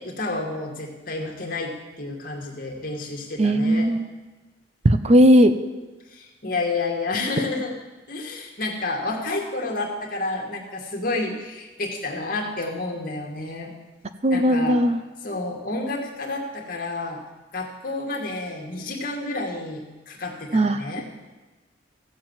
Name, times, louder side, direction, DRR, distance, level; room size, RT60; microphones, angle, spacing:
voice 1, 0.0-3.9 6.1-7.7 8.1-13.7 14.3-14.8 15.2-17.2 17.5-21.0, left 2 dB, 50° left, 1 dB, 2.3 m, -30 dB
voice 2, 3.4-4.1 4.8-5.5 14.2-15.0 20.5-20.9, equal, 35° right, 10 dB, 0.6 m, -17 dB
15.5 x 7.7 x 7.4 m, 1.2 s
head